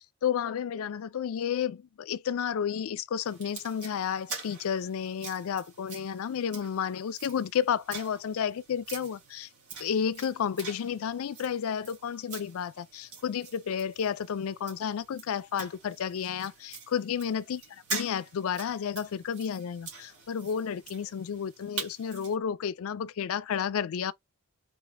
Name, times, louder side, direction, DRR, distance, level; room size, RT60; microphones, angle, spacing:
voice 1, 0.2-9.5 9.8-24.1, left 8 dB, 70° left, 0.4 m, -31 dB
sound 1, 3.2-22.4, right 4 dB, 85° right, 2.2 m, -44 dB
4.1 x 3.2 x 2.2 m
head